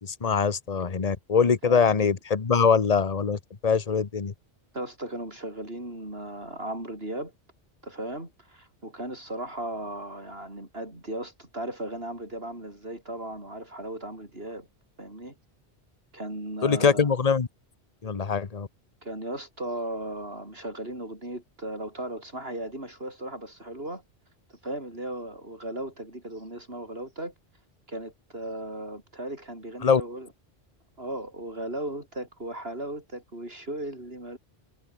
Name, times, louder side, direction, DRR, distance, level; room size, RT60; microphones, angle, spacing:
voice 1, 0.0-4.3 16.6-17.5 18.0-18.7 29.8-30.0, left 5 dB, 35° left, 1.1 m, -23 dB
voice 2, 1.6-2.0 4.7-7.3 7.8-14.7 15.0-15.3 16.1-17.1 19.0-24.0 24.5-27.3 27.9-30.3 31.0-34.4, right 1 dB, 65° right, 8.2 m, -36 dB
omnidirectional pair, 1.1 m